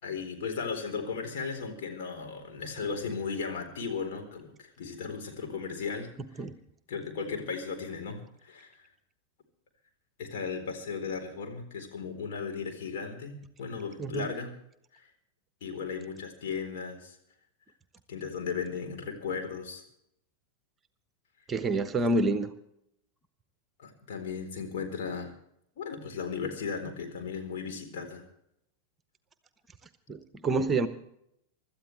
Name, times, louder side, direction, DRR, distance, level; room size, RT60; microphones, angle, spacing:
voice 1, 0.0-6.5 6.9-8.9 10.2-14.5 14.9-15.1 15.6-17.2 18.1-19.8 22.0-22.1 23.8-25.3 25.8-28.2, left 5 dB, 55° left, 3 dB, 4.1 m, -36 dB
voice 2, 21.5-22.5 30.1-30.9, right 2 dB, 20° right, 11 dB, 1.1 m, -27 dB
25.0 x 13.0 x 3.4 m, 0.76 s
figure-of-eight pair, 90°, 0 cm